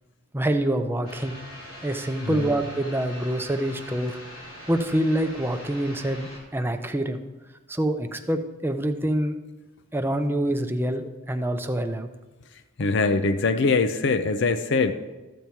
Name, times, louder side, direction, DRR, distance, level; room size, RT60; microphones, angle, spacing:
voice 1, 0.3-1.4 1.8-4.2 4.7-7.2 7.7-9.4 9.9-12.1, right 1 dB, 10° right, 6 dB, 0.6 m, -26 dB
sound 1, 1.0-6.4, equal, 75° left, 3.2 m, -42 dB
voice 2, 12.8-14.9, left 4 dB, 55° left, 11 dB, 0.5 m, -22 dB
14.0 x 7.1 x 4.5 m, 1.2 s
head